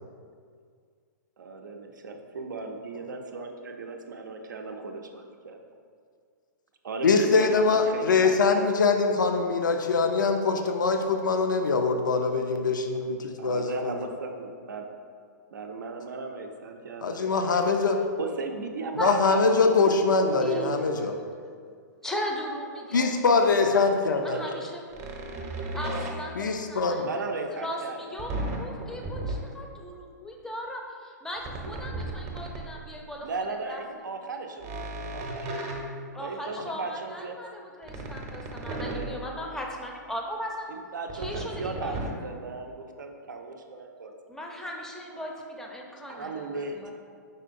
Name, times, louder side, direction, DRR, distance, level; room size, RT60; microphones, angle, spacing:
voice 1, 1.4-5.6 6.8-8.6 13.4-14.9 15.5-17.3 18.2-19.6 19.8-20.7 24.2-24.7 25.9-26.0 27.0-28.4 33.2-35.7 36.1-37.4 38.9-39.3 40.7-44.1 46.1-46.9, right 3 dB, 75° right, 4 dB, 0.5 m, -37 dB
voice 2, 7.0-13.9 17.0-18.0 19.0-21.2 22.9-24.4 26.4-27.1, left 4 dB, 80° left, 5 dB, 0.4 m, -23 dB
voice 3, 20.2-20.8 22.0-23.6 24.2-24.8 25.7-27.0 27.6-28.3 28.6-33.3 33.7-33.8 36.1-40.7 41.1-42.0 42.5-42.6 44.3-46.9, equal, 5° left, 0 dB, 0.5 m, -37 dB
sound 1, 24.9-26.5 28.2-29.5 31.4-32.9 34.6-36.5 37.8-39.5 41.1-42.1, right 2 dB, 30° right, 0.7 m, -35 dB
5.4 x 3.7 x 2.5 m, 2.1 s
hypercardioid pair, 115°, 10 cm